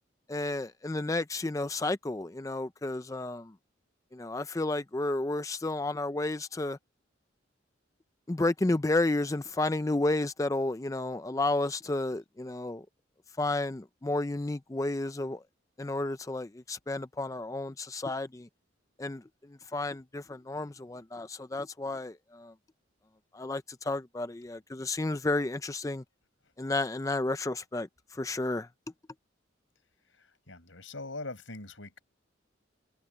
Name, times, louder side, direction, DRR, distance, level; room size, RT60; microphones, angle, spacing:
voice 1, 0.3-3.5 4.1-6.8 8.3-12.9 13.4-15.4 15.8-18.5 19.0-22.5 23.3-26.0 26.6-28.7, left 2 dB, 15° left, 0.4 m, -32 dB
voice 2, 30.0-32.0, left 2 dB, 85° left, 5.4 m, -42 dB
head